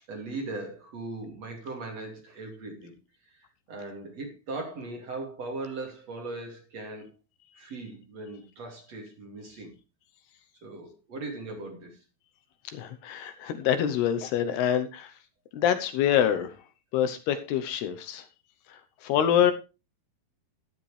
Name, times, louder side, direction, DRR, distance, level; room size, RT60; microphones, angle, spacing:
voice 1, 0.0-2.9 3.7-7.1 7.5-9.7 10.6-12.0, right 2 dB, 45° right, 3.3 m, -39 dB
voice 2, 12.7-15.1 15.5-16.6 16.9-18.3 18.7-19.5, left 9 dB, 75° left, 2.8 m, -26 dB
12.5 x 11.5 x 3.3 m
omnidirectional pair, 4.9 m